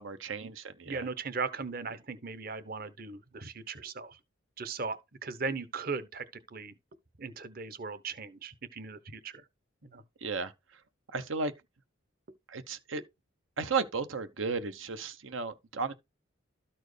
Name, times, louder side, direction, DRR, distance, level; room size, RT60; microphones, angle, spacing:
voice 1, 0.0-1.1 10.2-10.5 11.1-11.5 12.5-13.0 13.6-15.9, right 4 dB, 85° right, 0.9 m, -34 dB
voice 2, 0.9-4.2 4.6-6.7 7.2-9.4 9.9-10.0, right 4 dB, 50° right, 0.8 m, -38 dB
13.0 x 4.4 x 3.3 m
head